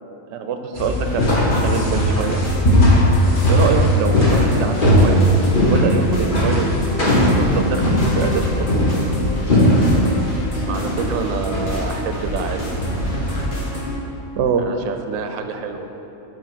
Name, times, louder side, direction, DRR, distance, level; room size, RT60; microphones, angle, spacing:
voice 1, 0.3-1.3 1.6-2.4 3.5-5.3 5.6-6.8 7.2-8.7 14.4-14.6, right 5 dB, 65° right, 6 dB, 0.8 m, -24 dB
sound 1, 0.8-13.4, left 1 dB, 40° left, 1.3 m, -18 dB
sound 2, 1.1-14.0, equal, 55° left, 1.7 m, -28 dB
voice 2, 10.7-12.6 14.6-15.9, right 5 dB, 90° right, 6 dB, 1.0 m, -28 dB
7.7 x 4.7 x 6.1 m, 3.0 s
omnidirectional pair, 1.4 m